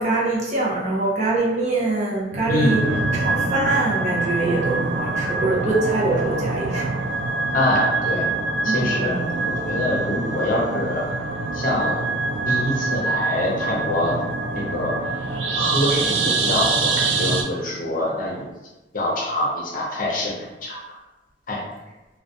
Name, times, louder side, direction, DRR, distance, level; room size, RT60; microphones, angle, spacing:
voice 1, 0.0-2.8 3.1-6.9 8.6-9.4, right 2 dB, 40° right, -5 dB, 0.6 m, -24 dB
sound 1, 2.3-17.4, right 3 dB, 90° right, 0.4 m, -24 dB
voice 2, 7.5-8.3 8.6-9.1 9.4-11.1 11.5-12.0 12.5-14.1 14.5-15.0 15.5-18.4 18.9-20.8 21.5-21.6, left 1 dB, 50° left, -3 dB, 0.6 m, -25 dB
2.3 x 2.2 x 2.6 m, 1.1 s
head